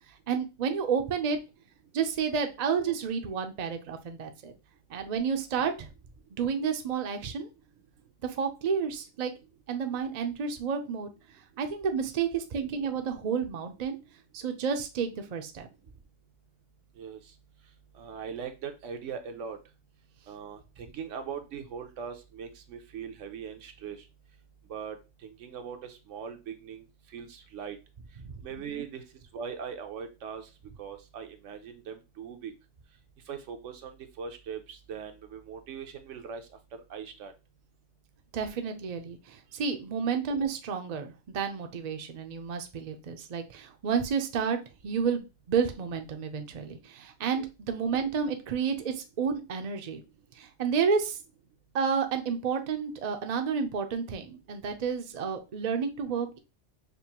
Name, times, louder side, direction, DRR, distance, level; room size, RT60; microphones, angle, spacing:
voice 1, 0.3-1.4 1.9-4.5 4.9-5.9 6.3-7.5 8.2-9.3 9.7-11.1 11.6-14.0 14.3-15.7 28.5-28.8 38.3-44.6 44.8-50.0 50.4-51.2 51.7-56.4, right 6 dB, 45° right, 6 dB, 0.5 m, -30 dB
voice 2, 18.0-19.6 20.3-24.0 24.7-25.0 25.2-26.8 27.1-27.8 28.4-29.0 29.3-30.5 30.8-32.5 33.3-36.4 36.9-37.3 47.4-47.5, right 7 dB, 75° right, 7 dB, 1.0 m, -40 dB
5.2 x 2.5 x 2.9 m, 0.28 s
omnidirectional pair, 1.3 m